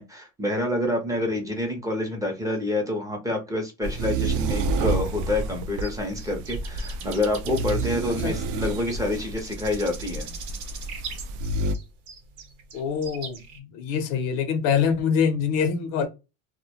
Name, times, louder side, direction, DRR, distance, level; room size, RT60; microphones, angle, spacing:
voice 1, 0.0-10.3, left 2 dB, 10° right, 0.6 m, -27 dB
sound 1, 3.8-11.7, right 3 dB, 65° right, 0.5 m, -29 dB
sound 2, 5.8-13.6, right 6 dB, 90° right, 0.8 m, -41 dB
voice 2, 12.7-16.1, left 7 dB, 65° left, 0.6 m, -25 dB
2.1 x 2.1 x 2.7 m
cardioid pair, 130°, 34 cm